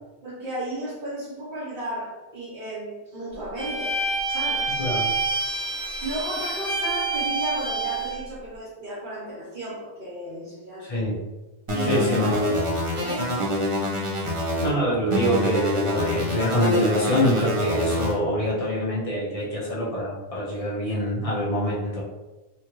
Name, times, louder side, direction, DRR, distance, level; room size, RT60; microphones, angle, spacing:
voice 1, 0.2-4.0 4.3-4.8 6.0-11.0 11.7-12.6 13.0-13.4, right 1 dB, 50° right, -10 dB, 1.1 m, -34 dB
Bowed string instrument, 3.6-8.2, right 3 dB, 25° left, 1.5 m, -27 dB
voice 2, 10.8-11.2 11.8-12.4 14.6-22.0, equal, 40° left, -6 dB, 0.6 m, -25 dB
sound 1, 11.7-14.7 15.1-18.1, left 1 dB, 35° right, 0.6 m, -25 dB
2.9 x 2.5 x 2.9 m, 1.1 s
omnidirectional pair, 1.1 m